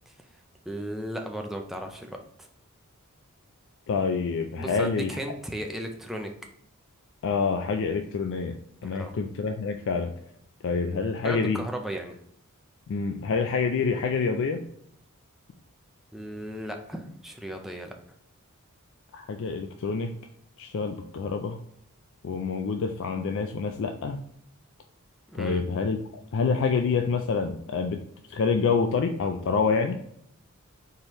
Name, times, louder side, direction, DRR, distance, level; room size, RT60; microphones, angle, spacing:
voice 1, 0.7-2.5 4.6-6.3 8.9-9.1 11.2-12.2 16.1-17.9 25.3-25.6, equal, ahead, 3 dB, 0.4 m, -35 dB
voice 2, 3.9-5.2 7.2-8.5 8.8-10.1 10.6-11.6 12.9-14.6 19.1-20.1 20.6-21.6 22.2-24.2 25.3-26.0 26.3-28.0 28.3-30.0, left 5 dB, 60° left, 5 dB, 0.4 m, -27 dB
4.4 x 3.4 x 3.0 m, 0.70 s
head